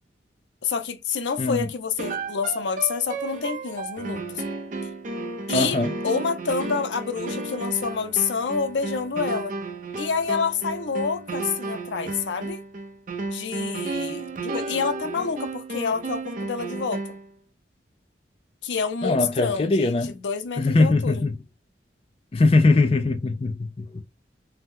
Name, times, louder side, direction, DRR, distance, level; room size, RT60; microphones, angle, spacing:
voice 1, 0.6-4.4 5.5-9.5 10.0-12.6 13.3-17.0 18.6-21.2, left 5 dB, 80° left, 0.5 m, -28 dB
sound 1, 2.0-17.3, right 3 dB, 45° right, 0.5 m, -33 dB
voice 2, 5.5-5.9 19.0-20.1 20.6-21.4 22.3-24.0, left 3 dB, 30° left, 0.4 m, -21 dB
2.9 x 2.0 x 3.4 m
head